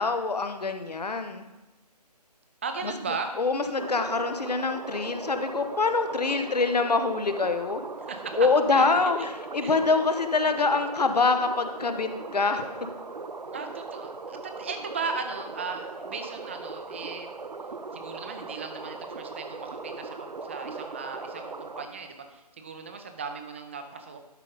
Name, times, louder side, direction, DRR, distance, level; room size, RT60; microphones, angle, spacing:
voice 1, 0.0-1.5 2.8-2.9 3.4-7.8 8.4-12.8, left 4 dB, 70° left, 8 dB, 1.0 m, -25 dB
voice 2, 2.6-3.4 8.1-8.4 8.7-8.9 9.2-9.3 9.6-9.7 13.5-17.3 17.9-24.2, right 5 dB, 20° right, 6 dB, 0.5 m, -37 dB
sound 1, 3.8-21.9, right 3 dB, 85° right, 0.7 m, -39 dB
11.5 x 5.1 x 4.0 m, 1.0 s
figure-of-eight pair, 150°, 21 cm